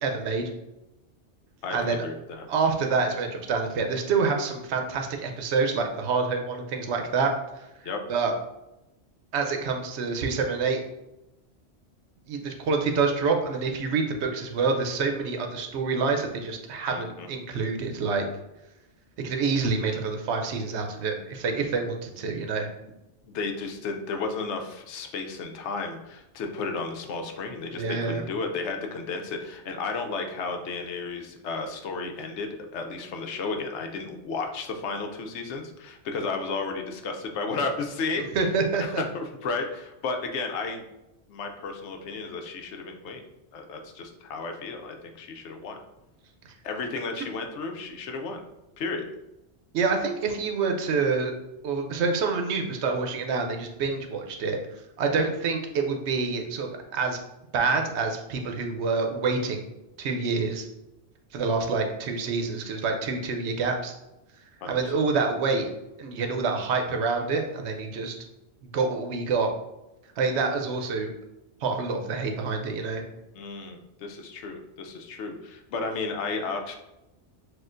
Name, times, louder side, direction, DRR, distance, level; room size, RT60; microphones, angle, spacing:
voice 1, 0.0-0.5 1.7-2.0 2.5-7.3 8.1-8.3 9.3-10.8 12.3-18.3 19.2-22.7 27.7-28.2 38.3-39.0 49.7-51.3 51.6-54.6 55.0-57.2 57.5-59.7 60.0-60.7 61.3-63.9 64.7-65.7 66.0-68.2 68.6-69.5 70.2-71.1 71.6-73.0, right 4 dB, 75° right, 4 dB, 0.9 m, -27 dB
voice 2, 1.6-2.5 7.8-8.0 16.9-17.3 23.2-38.3 38.8-40.8 41.3-43.2 43.5-45.8 46.6-48.4 48.8-49.0 55.2-55.3 64.6-65.1 73.3-76.8, left 4 dB, 80° left, 4 dB, 0.9 m, -33 dB
6.1 x 2.4 x 2.5 m, 0.93 s
omnidirectional pair, 1.2 m